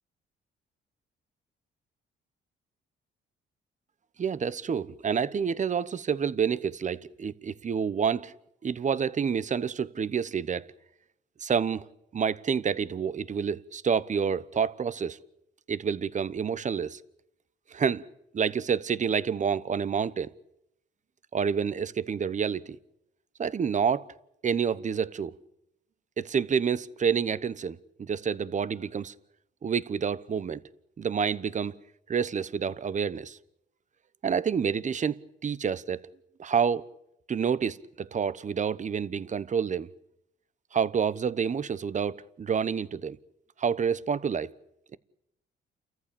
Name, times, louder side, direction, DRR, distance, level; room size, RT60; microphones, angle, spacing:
voice 1, 4.2-8.3 8.6-10.7 11.4-11.8 12.1-15.2 15.7-17.0 17.7-18.0 18.3-20.3 21.3-22.8 23.4-24.1 24.4-25.4 26.2-29.1 29.6-30.6 31.0-31.7 32.1-33.4 34.2-36.0 36.4-36.9 37.3-39.9 40.7-43.2 43.6-44.5, right 6 dB, 40° right, 1.0 m, -28 dB
30.0 x 14.5 x 8.5 m
cardioid pair, 90°, 20 cm